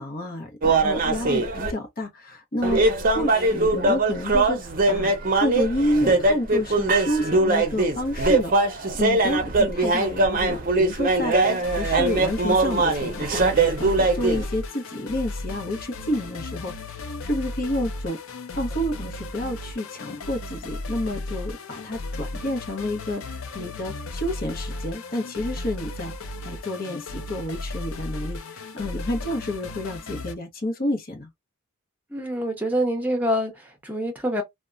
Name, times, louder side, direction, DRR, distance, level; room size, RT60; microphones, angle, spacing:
voice 1, 0.0-2.8 3.1-13.4 13.8-16.7 17.2-18.2 18.5-26.1 26.4-31.3, left 1 dB, 45° left, 0.9 m, -29 dB
sound 1, 0.6-1.7 2.6-14.5, right 2 dB, 40° right, 0.6 m, -21 dB
sound 2, 11.4-30.3, left 2 dB, 70° left, 0.5 m, -35 dB
voice 2, 32.1-34.4, equal, 10° right, 0.8 m, -26 dB
2.8 x 2.2 x 2.4 m
head